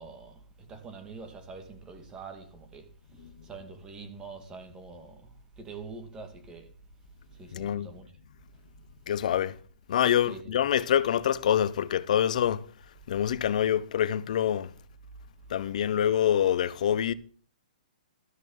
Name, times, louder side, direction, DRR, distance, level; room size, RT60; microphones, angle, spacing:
voice 1, 0.0-6.7 7.3-8.1 10.2-10.6, right 4 dB, 15° right, 2.3 m, -45 dB
voice 2, 7.5-7.9 9.1-9.5 9.9-12.6 13.1-14.7 15.5-17.1, left 10 dB, 60° left, 0.9 m, -26 dB
13.0 x 6.2 x 5.5 m
hypercardioid pair, 145°, 5 cm